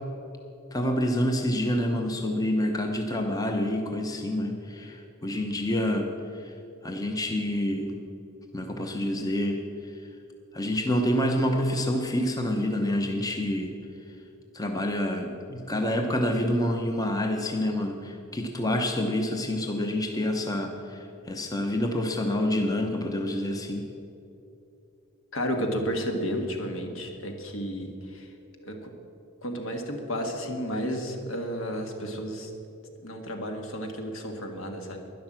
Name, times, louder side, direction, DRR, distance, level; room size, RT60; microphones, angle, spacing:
voice 1, 0.7-6.5 6.8-8.0 8.5-9.6 10.5-13.7 14.5-23.9, left 1 dB, 15° left, 3 dB, 0.8 m, -27 dB
voice 2, 25.3-28.3 28.6-28.9 29.4-32.5 33.0-35.0, equal, 65° left, 4 dB, 1.7 m, -32 dB
12.0 x 11.0 x 7.4 m, 2.9 s
head